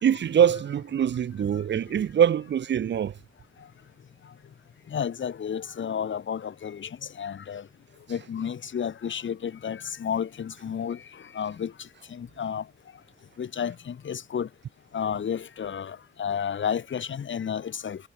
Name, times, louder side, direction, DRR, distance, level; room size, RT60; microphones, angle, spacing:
voice 1, 0.0-3.1, right 9 dB, 70° right, 0.7 m, -23 dB
voice 2, 4.9-6.9 7.2-7.6 8.1-11.0 11.4-11.7 12.1-12.6 13.4-14.5 14.9-18.0, left 8 dB, 80° left, 5.2 m, -31 dB
wide cardioid pair, 100°, 19 cm